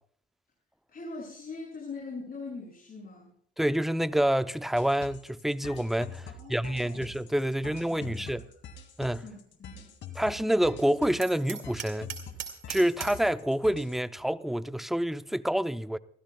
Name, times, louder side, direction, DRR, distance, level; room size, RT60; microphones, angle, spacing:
voice 1, 0.9-3.3 6.2-7.0 7.6-8.3 9.0-9.9, left 3 dB, 50° left, 6.6 m, -42 dB
voice 2, 3.6-8.4 9.0-9.2 10.2-12.1 12.7-16.0, equal, ahead, 0.6 m, -27 dB
sound 1, 4.7-14.0, left 5 dB, 75° left, 2.3 m, -45 dB
Hammer, 11.2-13.3, right 9 dB, 85° right, 2.6 m, -40 dB
29.5 x 13.5 x 2.3 m
cardioid pair, 90°, 20 cm